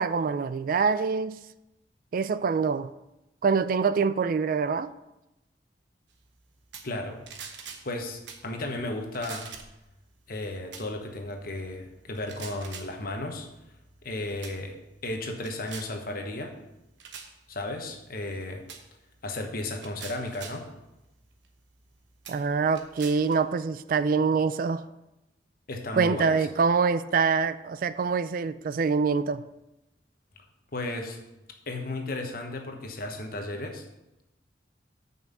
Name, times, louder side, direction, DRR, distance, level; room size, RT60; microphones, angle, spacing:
voice 1, 0.0-1.4 2.1-2.9 3.4-4.9 22.3-24.9 25.9-29.4, right 5 dB, 50° right, 0.3 m, -25 dB
sound 1, 6.7-7.0 7.3-7.9 8.3-8.5 9.1-9.8 10.7-10.9 12.2-12.9 13.8-14.0 14.4-14.6 15.0-15.9 17.0-17.3 18.7-18.8 19.7-20.6 21.4-21.5 22.2-23.4, right 6 dB, 90° right, 1.0 m, -43 dB
voice 2, 6.8-7.3 7.8-9.5 10.3-13.5 14.0-16.5 17.5-18.6 19.2-20.7 25.7-26.5 30.7-31.2 31.7-33.8, left 2 dB, 55° left, 1.2 m, -34 dB
6.0 x 5.6 x 6.9 m
head